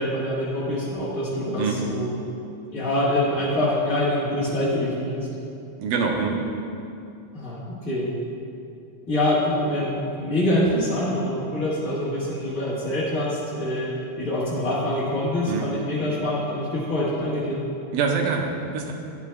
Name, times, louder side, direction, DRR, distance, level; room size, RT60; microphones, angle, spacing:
voice 1, 0.0-2.1 2.7-5.3 7.3-8.1 9.1-17.6, left 1 dB, 60° left, -8 dB, 0.8 m, -25 dB
voice 2, 5.8-6.4 15.5-15.7 17.9-18.9, right 5 dB, 85° right, 1 dB, 2.6 m, -25 dB
12.0 x 8.6 x 2.3 m, 2.7 s
omnidirectional pair, 4.0 m